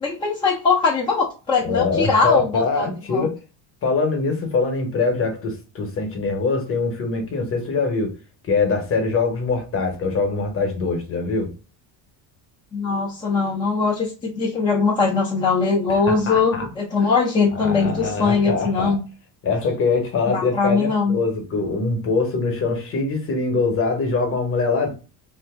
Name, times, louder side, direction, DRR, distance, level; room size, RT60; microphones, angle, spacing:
voice 1, 0.0-2.9 3.1-3.3 12.7-19.0 20.3-21.1, left 4 dB, 10° left, 0.5 m, -21 dB
voice 2, 1.6-3.4 3.8-8.1 8.4-11.5 16.1-16.7 17.0-17.1 17.5-19.0 19.4-24.9, left 4 dB, 30° left, 0.9 m, -23 dB
2.9 x 2.6 x 3.4 m
cardioid pair, 170°, 42 cm